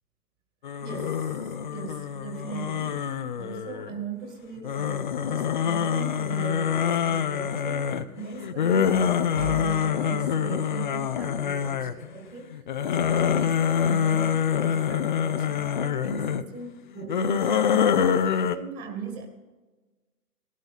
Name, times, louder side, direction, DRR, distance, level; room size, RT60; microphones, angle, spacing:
sound 1, 0.6-4.0 4.6-12.1 12.5-16.4 17.0-18.6, left 8 dB, 30° left, 0.5 m, -26 dB
voice 1, 0.8-19.3, right 5 dB, 20° right, 3 dB, 2.1 m, -39 dB
18.0 x 12.0 x 4.1 m, 1.2 s
figure-of-eight pair, 125°, 47 cm